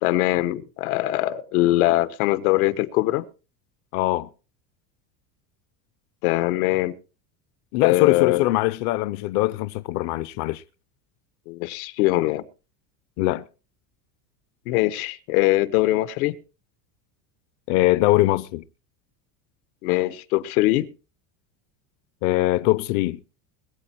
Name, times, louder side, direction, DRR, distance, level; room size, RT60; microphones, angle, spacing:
voice 1, 0.0-3.3 6.2-7.0 7.8-8.5 11.5-12.4 14.7-16.3 19.8-20.9, left 17 dB, 85° left, 1.2 m, -22 dB
voice 2, 3.9-4.3 7.7-10.6 13.2-13.4 17.7-18.6 22.2-23.2, left 17 dB, 45° left, 0.6 m, -22 dB
21.5 x 8.3 x 4.4 m
cardioid pair, 175°, 42 cm